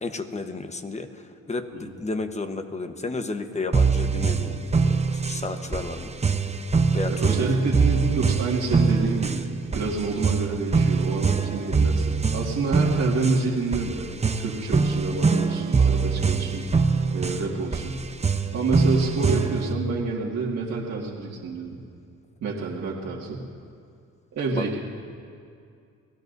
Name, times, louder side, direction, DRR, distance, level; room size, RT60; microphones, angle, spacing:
voice 1, 0.0-4.6 4.8-6.1 6.9-7.5 24.5-24.8, left 3 dB, 20° left, 7 dB, 1.1 m, -32 dB
sound 1, 3.7-19.7, right 4 dB, 20° right, 0.8 m, -24 dB
voice 2, 7.1-16.7 17.1-18.0 18.5-21.8 22.4-23.5 24.3-24.8, right 3 dB, 60° right, -5 dB, 2.0 m, -28 dB
29.5 x 18.0 x 2.7 m, 2.4 s
cardioid pair, 90°, 30 cm